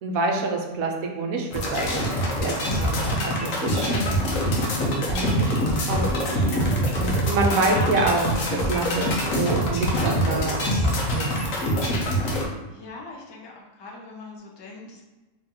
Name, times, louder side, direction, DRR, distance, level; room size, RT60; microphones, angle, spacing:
voice 1, 0.0-2.1 2.3-4.2 4.5-4.6 5.1-6.7 7.0-9.1 9.3-11.5, right 3 dB, 75° right, 1 dB, 1.1 m, -27 dB
sound 1, 1.5-12.4, equal, 70° left, 1.1 m, -24 dB
voice 2, 7.6-8.0 12.4-15.0, left 3 dB, 35° left, -2 dB, 0.4 m, -40 dB
3.3 x 2.9 x 3.8 m, 1.1 s
omnidirectional pair, 1.5 m